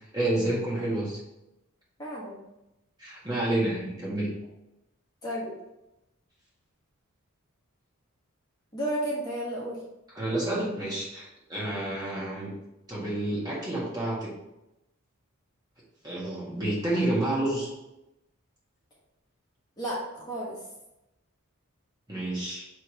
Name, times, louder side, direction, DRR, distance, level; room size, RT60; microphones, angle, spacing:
voice 1, 0.1-1.2 3.0-4.3 10.1-12.5 12.9-14.3 16.0-17.7 22.1-22.6, right 1 dB, 20° right, -6 dB, 1.6 m, -29 dB
voice 2, 2.0-2.4 5.2-5.5 8.7-9.8 19.8-20.6, right 1 dB, 20° left, -6 dB, 1.5 m, -32 dB
7.0 x 3.3 x 4.2 m, 0.91 s
head